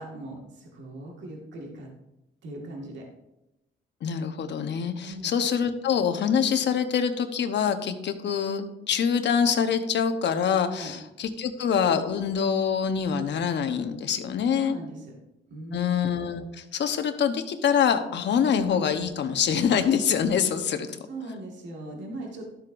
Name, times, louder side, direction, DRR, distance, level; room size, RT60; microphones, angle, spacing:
voice 1, 0.0-1.9 2.4-3.1 5.0-5.3 10.8-10.9 14.6-15.1 15.5-16.0 21.1-22.4, right 1 dB, 65° right, -1 dB, 1.9 m, -39 dB
voice 2, 4.0-14.8 15.7-21.0, left 7 dB, 60° left, 7 dB, 1.0 m, -25 dB
12.5 x 7.7 x 2.6 m, 0.90 s
cardioid pair, 90°, 20 cm